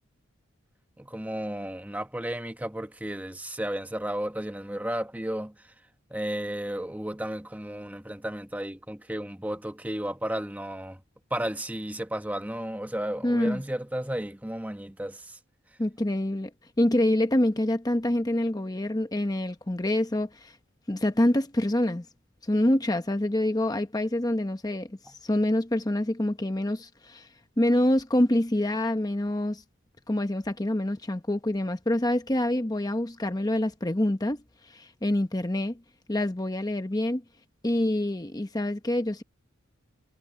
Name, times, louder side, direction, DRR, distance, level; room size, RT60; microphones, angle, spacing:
voice 1, 1.0-5.5 6.1-11.0 11.3-15.4, right 1 dB, 10° right, 1.0 m, -33 dB
voice 2, 13.2-13.6 15.8-16.5 16.8-20.5 20.9-22.0 22.4-24.9 25.2-27.3 27.6-29.6 30.1-34.4 34.7-35.8 36.1-37.2 37.6-39.2, left 1 dB, 20° left, 0.9 m, -26 dB
head